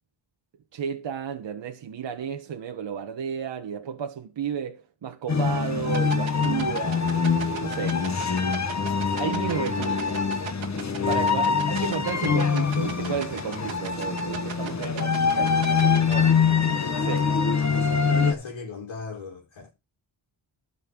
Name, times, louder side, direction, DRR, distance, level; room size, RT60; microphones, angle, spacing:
voice 1, 0.7-7.2 7.6-8.0 9.2-10.2 11.1-16.4 16.9-17.3, right 7 dB, 70° right, 1.1 m, -33 dB
sound 1, 5.3-18.3, left 5 dB, 35° left, 1.3 m, -24 dB
sound 2, 5.9-16.1, right 8 dB, 85° right, 1.7 m, -36 dB
voice 2, 11.0-11.4 16.8-17.2 17.6-19.7, left 4 dB, 85° left, 2.0 m, -37 dB
12.5 x 4.2 x 7.2 m
cardioid pair, 80°, 45 cm